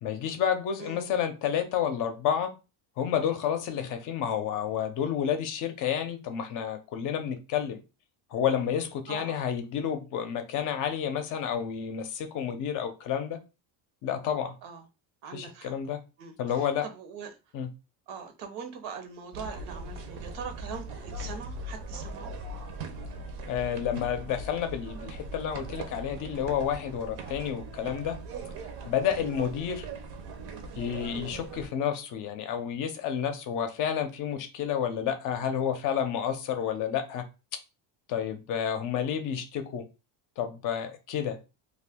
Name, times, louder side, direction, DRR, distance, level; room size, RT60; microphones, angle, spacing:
voice 1, 0.0-2.5 3.0-7.8 8.3-13.4 14.0-14.6 15.3-16.0 16.4-16.8 17.5-17.7 23.5-28.2 28.8-29.9 30.8-37.2 38.1-39.8 40.4-41.4, left 8 dB, 45° left, 0.5 m, -30 dB
voice 2, 0.8-1.1 9.1-9.4 14.6-14.9 15.2-15.7 16.2-17.4 18.1-22.3 29.1-29.3, right 6 dB, 80° right, 0.9 m, -42 dB
sound 1, 19.3-31.7, right 2 dB, 60° right, 0.7 m, -40 dB
2.6 x 2.4 x 3.5 m
cardioid pair, 170°, 46 cm